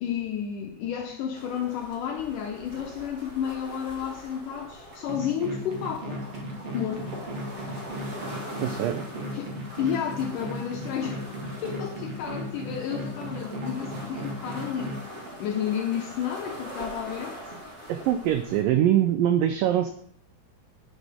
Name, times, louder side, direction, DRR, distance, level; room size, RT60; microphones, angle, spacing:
voice 1, 0.0-6.2 6.7-7.1 9.2-15.0 15.4-17.4, left 9 dB, 75° left, 2 dB, 2.0 m, -31 dB
sound 1, 1.3-18.6, equal, 30° right, 1.5 m, -42 dB
sound 2, 5.1-15.0, right 1 dB, 50° right, 2.1 m, -36 dB
voice 2, 8.6-9.1 17.9-19.9, right 11 dB, 90° right, 8 dB, 1.9 m, -23 dB
10.5 x 9.0 x 3.6 m, 0.64 s
omnidirectional pair, 4.7 m